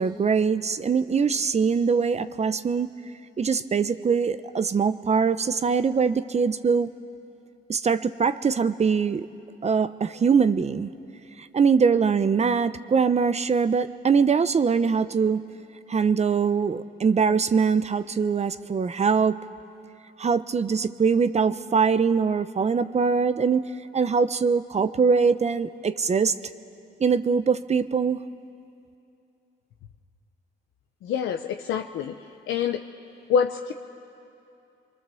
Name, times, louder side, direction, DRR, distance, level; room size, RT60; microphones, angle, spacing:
voice 1, 0.0-2.9 3.4-6.9 7.7-9.3 9.6-10.9 11.5-15.4 15.9-19.4 20.2-23.7 23.9-26.3 27.0-28.2, right 5 dB, 35° right, 12 dB, 0.7 m, -22 dB
voice 2, 31.0-32.1 32.5-32.8 33.3-33.7, left 7 dB, 85° left, 4 dB, 0.8 m, -25 dB
28.0 x 24.0 x 7.0 m, 2.7 s
cardioid pair, 90°, 20 cm